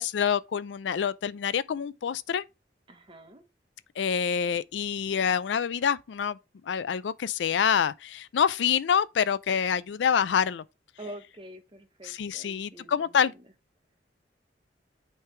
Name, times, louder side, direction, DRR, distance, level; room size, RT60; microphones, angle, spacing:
voice 1, 0.0-2.4 4.0-6.4 6.7-10.6 12.0-13.3, left 7 dB, 90° left, 0.4 m, -26 dB
voice 2, 2.9-3.4 11.0-13.5, right 1 dB, 30° right, 1.1 m, -46 dB
8.9 x 3.3 x 3.2 m
head